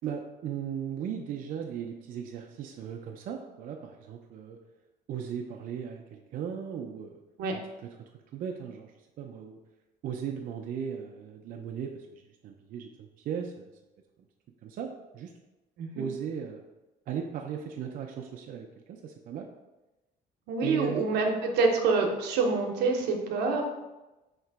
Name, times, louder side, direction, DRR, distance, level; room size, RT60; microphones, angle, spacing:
voice 1, 0.0-4.6 5.1-7.1 7.5-7.9 8.3-8.9 9.2-9.6 10.0-13.7 14.6-15.3 15.9-16.6 17.1-19.5 20.6-21.1, right 7 dB, 55° right, 2 dB, 0.4 m, -37 dB
voice 2, 20.5-23.6, right 4 dB, 85° right, 2 dB, 0.8 m, -26 dB
3.2 x 2.9 x 4.5 m, 1.0 s
cardioid pair, 110°, 17 cm